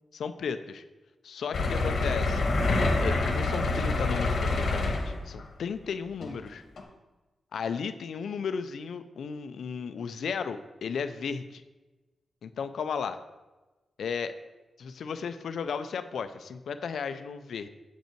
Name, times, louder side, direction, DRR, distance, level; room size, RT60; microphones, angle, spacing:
voice 1, 0.1-0.8 1.2-2.5 3.0-6.6 7.5-11.6 12.4-13.2 14.0-14.4 14.8-17.7, left 6 dB, 75° left, 10 dB, 0.4 m, -34 dB
sound 1, 1.5-5.4 6.2-6.4 6.8-6.9, left 3 dB, 55° left, 1.2 m, -27 dB
7.8 x 5.4 x 4.4 m, 1.1 s
wide cardioid pair, 140°, 0 cm